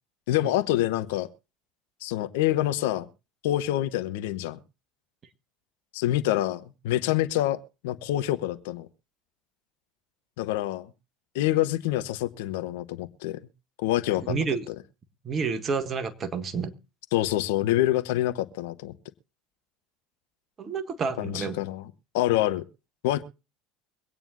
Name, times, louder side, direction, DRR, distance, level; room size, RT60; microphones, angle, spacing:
voice 1, 0.3-1.3 2.0-3.1 3.4-4.6 5.9-8.9 10.4-10.9 11.3-13.4 13.8-14.4 17.1-18.9 21.2-21.8 22.1-22.6 23.0-23.2, left 14 dB, 70° left, 0.9 m, -26 dB
voice 2, 14.3-14.7 15.2-16.7 20.6-21.6, right 5 dB, 35° right, 1.5 m, -29 dB
24.0 x 9.0 x 2.5 m
hypercardioid pair, 75°, 0 cm